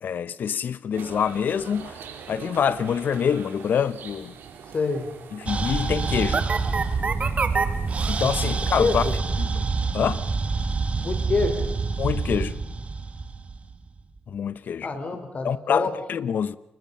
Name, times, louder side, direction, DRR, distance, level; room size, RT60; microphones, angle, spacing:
voice 1, 0.0-2.0 2.3-4.3 5.3-6.5 8.1-9.1 9.4-9.7 9.9-10.2 12.0-12.6 14.3-14.9 15.4-16.6, left 7 dB, 65° left, 0.9 m, -26 dB
sound 1, 0.9-9.2, right 7 dB, 85° right, 3.2 m, -43 dB
voice 2, 4.7-5.1 8.5-9.1 11.0-11.7 14.8-15.9, left 3 dB, 40° left, 4.8 m, -26 dB
sound 2, 5.5-14.0, right 4 dB, 40° right, 1.9 m, -26 dB
29.0 x 20.5 x 5.7 m
cardioid pair, 90°, 3 cm